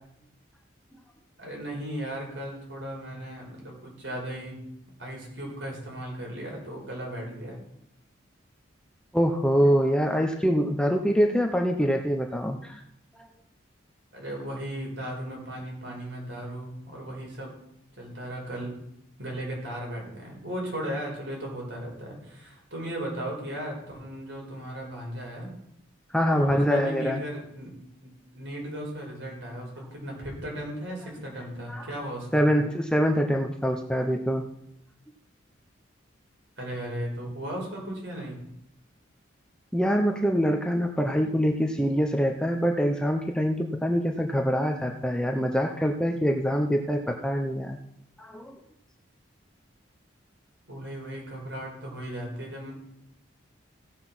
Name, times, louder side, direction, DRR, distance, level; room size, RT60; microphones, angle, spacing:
voice 1, 1.4-4.6 5.0-7.6 14.1-17.5 18.0-18.7 19.2-25.5 26.3-27.7 28.0-32.5 36.6-38.4 50.7-52.7, right 1 dB, 70° right, -1 dB, 5.0 m, -36 dB
voice 2, 9.1-12.8 26.1-27.2 31.7-31.8 32.3-34.4 39.7-47.8 48.2-48.6, equal, 5° left, 3 dB, 0.7 m, -24 dB
16.0 x 6.1 x 6.1 m, 0.77 s
head